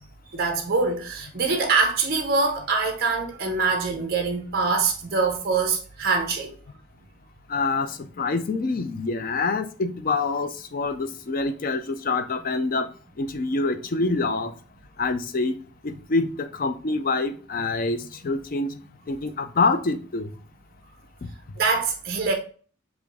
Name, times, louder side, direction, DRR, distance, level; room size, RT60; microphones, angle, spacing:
voice 1, 0.3-6.6 21.6-22.3, right 4 dB, 45° right, 0.6 m, -24 dB
voice 2, 7.5-7.9 8.2-12.9 13.2-14.5 15.0-15.5 15.8-18.0 18.2-18.7 19.1-20.3, left 3 dB, 40° left, 0.4 m, -26 dB
5.1 x 2.5 x 3.4 m
head